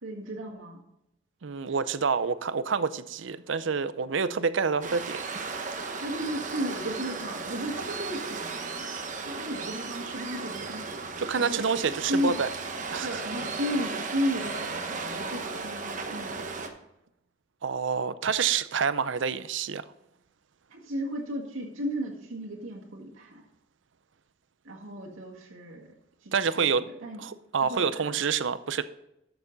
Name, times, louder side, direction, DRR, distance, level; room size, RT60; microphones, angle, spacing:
voice 1, 0.0-0.8 6.0-8.9 9.2-10.9 11.4-11.6 12.1-12.4 13.0-16.7 20.7-23.4 24.6-25.9 26.2-27.2 27.6-28.1, equal, 90° right, -2 dB, 1.9 m, -34 dB
voice 2, 1.4-5.2 11.2-12.5 12.9-13.2 17.6-19.8 26.3-26.9 27.2-28.8, right 6 dB, 65° right, 14 dB, 0.5 m, -27 dB
Waves surf, 4.8-16.7, right 4 dB, 40° right, 1.0 m, -35 dB
13.0 x 6.9 x 4.0 m, 0.85 s
head